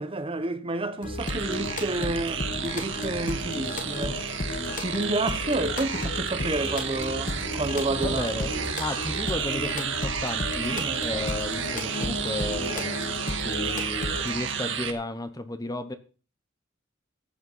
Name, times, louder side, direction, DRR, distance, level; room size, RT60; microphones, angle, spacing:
voice 1, 0.0-4.2 4.8-8.2 10.7-11.0, right 2 dB, 30° right, 1.0 m, -30 dB
sound 1, 1.0-14.4, left 2 dB, 40° left, 1.2 m, -34 dB
sound 2, 1.2-14.9, right 6 dB, 70° right, 1.7 m, -31 dB
voice 2, 8.0-13.0 13.4-15.9, left 2 dB, 20° left, 1.0 m, -34 dB
14.0 x 8.7 x 5.7 m
head